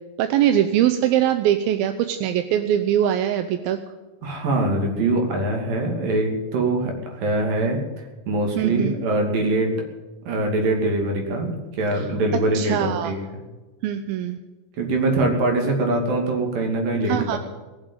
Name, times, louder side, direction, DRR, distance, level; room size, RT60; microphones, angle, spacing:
voice 1, 0.2-3.8 8.6-8.9 11.9-12.1 12.5-13.1 13.8-14.4 17.0-17.4, right 11 dB, 90° right, 9 dB, 2.6 m, -22 dB
voice 2, 4.2-9.7 10.3-13.2 14.8-17.4, right 2 dB, 70° right, 2 dB, 4.4 m, -23 dB
19.5 x 7.5 x 9.0 m, 1.2 s
omnidirectional pair, 4.1 m